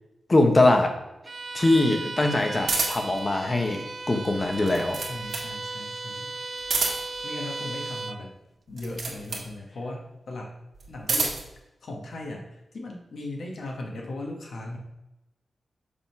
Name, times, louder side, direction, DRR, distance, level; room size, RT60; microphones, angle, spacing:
voice 1, 0.3-0.9 1.5-3.8 4.1-5.0, left 2 dB, 25° left, 4 dB, 1.0 m, -22 dB
Bowed string instrument, 1.2-8.3, right 3 dB, 35° right, 0.4 m, -36 dB
sound 1, 2.6-3.2 4.5-5.5 6.6-7.2 8.7-9.5 10.7-11.5, right 3 dB, 70° right, 1.8 m, -28 dB
voice 2, 5.0-6.3 7.2-8.3 8.7-10.5 10.9-11.4 11.8-14.8, left 2 dB, 65° left, 0 dB, 1.2 m, -37 dB
6.9 x 3.6 x 5.8 m, 0.91 s
wide cardioid pair, 150°, 0 cm